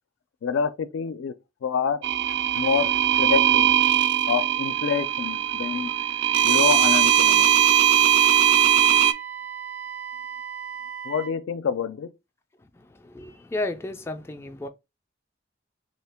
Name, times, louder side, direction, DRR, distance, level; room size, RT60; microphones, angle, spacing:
voice 1, 0.4-1.3 1.6-2.0 2.6-2.9 3.2-3.7 4.3-5.9 6.4-7.5 11.0-12.1, left 6 dB, 85° left, 0.4 m, -27 dB
sound 1, 2.0-9.1, right 11 dB, 65° right, 0.3 m, -20 dB
Wind instrument woodwind instrument, 6.3-11.4, right 7 dB, 80° right, 0.7 m, -37 dB
voice 2, 13.1-14.7, left 2 dB, 15° left, 0.3 m, -32 dB
2.8 x 2.8 x 3.4 m
head